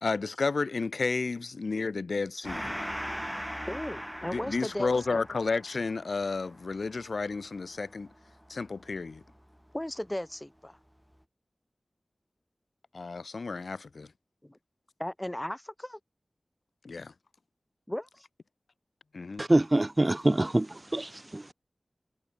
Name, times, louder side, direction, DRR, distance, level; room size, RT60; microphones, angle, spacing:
voice 1, 0.0-2.8 4.3-8.1 8.5-9.2 12.9-14.1 16.8-17.1 19.1-19.4, left 4 dB, 80° left, 2.1 m, -32 dB
Gong, 2.4-9.4, equal, ahead, 3.1 m, -40 dB
voice 2, 3.7-5.2 9.7-10.8 14.4-14.6 15.0-16.0 17.9-18.3, left 1 dB, 15° left, 3.4 m, -36 dB
voice 3, 19.4-20.7 20.9-21.4, right 1 dB, 25° right, 0.8 m, -25 dB
wide cardioid pair, 85°, 0 cm